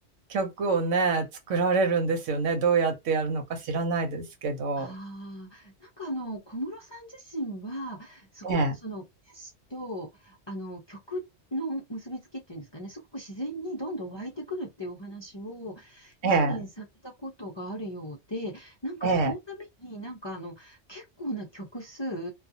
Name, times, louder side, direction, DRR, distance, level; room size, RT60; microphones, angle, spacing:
voice 1, 0.3-4.9 8.4-8.7 16.2-16.6 19.0-19.3, right 4 dB, 85° right, 1.1 m, -26 dB
voice 2, 4.8-11.2 11.5-22.3, equal, 30° left, 0.5 m, -37 dB
2.4 x 2.3 x 2.6 m
omnidirectional pair, 1.3 m